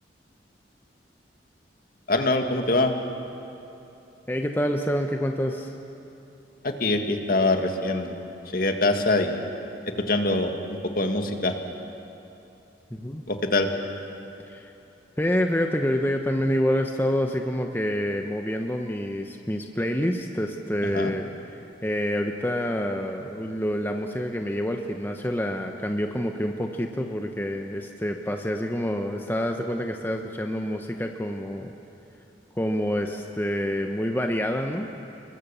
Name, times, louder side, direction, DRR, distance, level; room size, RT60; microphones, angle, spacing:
voice 1, 2.1-2.9 6.6-8.2 8.5-9.4 9.8-11.5 13.3-13.7 20.9-21.1, left 2 dB, 50° left, 5 dB, 1.9 m, -24 dB
voice 2, 4.3-5.7 12.9-13.2 14.5-14.7 15.2-31.7 32.5-34.9, equal, 10° left, 3 dB, 0.9 m, -27 dB
29.5 x 22.0 x 7.0 m, 2.9 s
head